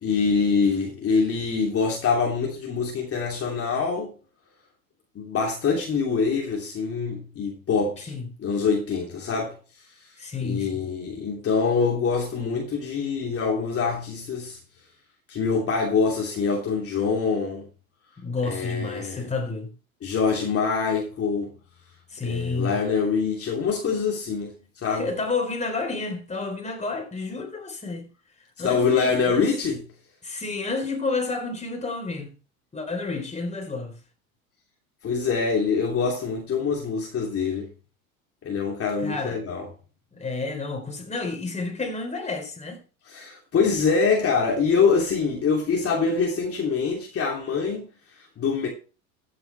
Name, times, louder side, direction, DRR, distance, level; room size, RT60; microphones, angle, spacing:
voice 1, 0.0-4.1 5.1-8.1 8.4-9.5 10.4-14.6 15.3-17.7 18.4-19.3 20.0-21.5 22.2-25.1 28.6-29.8 35.0-37.7 38.4-39.6 43.1-47.9 48.2-48.7, left 5 dB, 30° left, 3.0 m, -24 dB
voice 2, 10.2-10.8 18.2-19.7 22.1-22.8 24.8-28.1 28.6-29.5 30.2-32.3 32.7-34.0 39.0-39.4 40.1-42.8, left 3 dB, 15° left, 3.9 m, -30 dB
14.5 x 8.0 x 3.3 m
hypercardioid pair, 90°, 42 cm